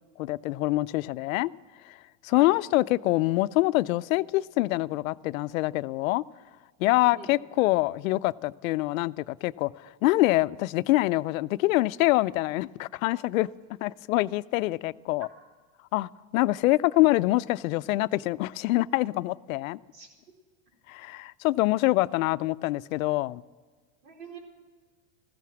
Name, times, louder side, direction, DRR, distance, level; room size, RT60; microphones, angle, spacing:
voice 1, 0.2-1.5 1.9-2.0 2.2-6.2 6.8-13.5 13.8-15.3 15.9-19.8 20.9-23.4, left 19 dB, 75° left, 0.5 m, -25 dB
voice 2, 6.9-7.3 19.9-20.1 24.0-24.4, right 5 dB, 70° right, 4.4 m, -45 dB
14.5 x 14.0 x 6.2 m
hypercardioid pair, 115°, 41 cm